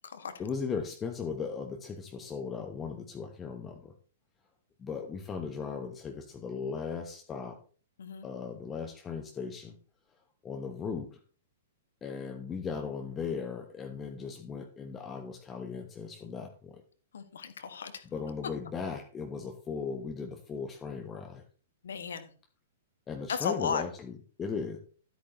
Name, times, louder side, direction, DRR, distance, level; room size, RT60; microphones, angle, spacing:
voice 1, 0.4-3.9 4.8-7.6 8.2-9.8 10.4-11.2 12.0-16.8 18.0-21.4 23.1-24.8, left 5 dB, 20° left, 4 dB, 1.2 m, -37 dB
voice 2, 17.1-17.9 21.8-22.3 23.3-23.8, left 6 dB, 60° left, 10 dB, 1.4 m, -34 dB
13.0 x 8.7 x 3.1 m, 0.40 s
figure-of-eight pair, 110°, 0 cm